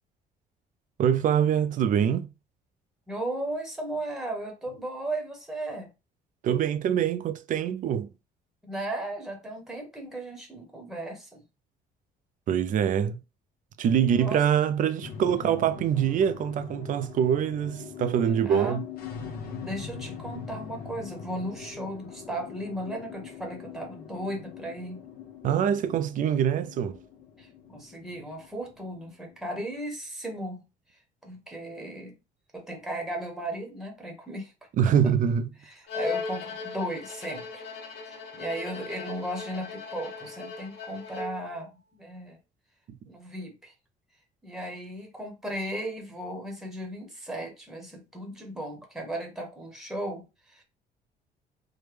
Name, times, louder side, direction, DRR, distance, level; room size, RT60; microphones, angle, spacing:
voice 1, 1.0-2.3 6.4-8.1 12.5-13.2 13.8-18.8 25.4-27.0 34.8-35.5 42.9-43.0, right 8 dB, 50° right, 0.4 m, -24 dB
voice 2, 3.1-5.9 8.6-11.4 14.0-14.4 15.3-15.6 18.4-18.8 19.6-25.0 27.4-30.6 31.2-32.2 32.5-34.5 34.8-34.9 35.6-37.7 38.0-42.4 43.0-43.7 44.4-50.6, right 1 dB, ahead, 1.0 m, -36 dB
sound 1, 15.0-29.7, left 7 dB, 65° left, 0.7 m, -42 dB
Bowed string instrument, 35.9-41.6, left 5 dB, 85° left, 1.1 m, -37 dB
3.3 x 2.1 x 3.3 m
cardioid pair, 110°, 17 cm